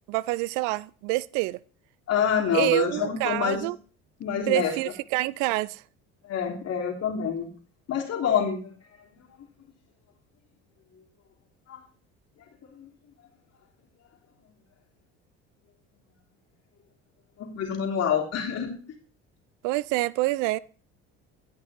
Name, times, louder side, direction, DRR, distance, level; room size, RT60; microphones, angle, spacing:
voice 1, 0.1-1.6 2.5-3.8 4.5-5.8 19.6-20.6, right 20 dB, 70° right, 0.5 m, -26 dB
voice 2, 2.1-3.6 4.2-4.7 6.3-7.5 7.9-8.7 11.7-11.8 12.7-12.9 17.4-19.0, left 8 dB, 50° left, 3.2 m, -27 dB
16.5 x 5.9 x 3.1 m
hypercardioid pair, 75°, 33 cm